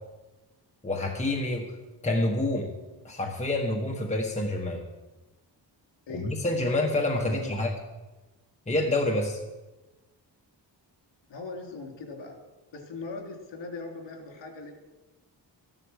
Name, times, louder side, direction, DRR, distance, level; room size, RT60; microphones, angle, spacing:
voice 1, 0.8-1.6 2.0-2.7 3.0-4.8 6.1-7.7 8.7-9.4, left 2 dB, 15° left, 0 dB, 1.4 m, -27 dB
voice 2, 11.3-12.4 12.7-14.7, left 3 dB, 80° left, 1 dB, 3.3 m, -40 dB
14.0 x 11.5 x 6.5 m, 1.1 s
wide cardioid pair, 165°, 43 cm